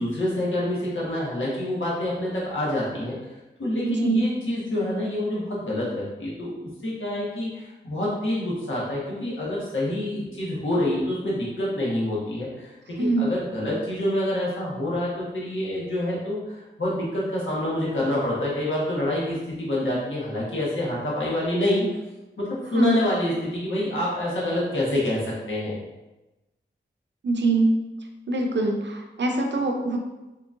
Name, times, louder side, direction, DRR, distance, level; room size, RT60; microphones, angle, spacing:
voice 1, 0.0-3.1 3.6-6.5 6.8-21.9 22.4-25.8, left 1 dB, 85° left, -6 dB, 1.2 m, -27 dB
voice 2, 3.8-4.2 13.0-13.3 22.7-23.0 27.2-27.8 28.3-30.0, right 3 dB, 65° right, 3 dB, 0.5 m, -23 dB
3.7 x 3.0 x 2.5 m, 1.0 s
cardioid pair, 40°, 20 cm